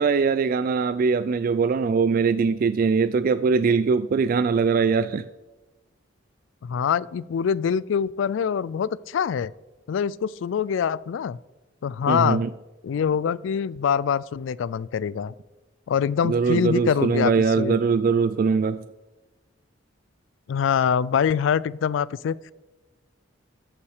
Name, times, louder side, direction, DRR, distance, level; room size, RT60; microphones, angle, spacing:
voice 1, 0.0-5.3 12.1-12.5 16.2-18.8, right 5 dB, 45° right, 13 dB, 0.3 m, -22 dB
voice 2, 6.6-9.5 9.9-11.4 11.8-12.4 12.8-15.3 15.9-17.8 20.5-22.5, left 7 dB, 70° left, 21 dB, 0.3 m, -24 dB
14.0 x 5.8 x 4.8 m, 1.1 s
head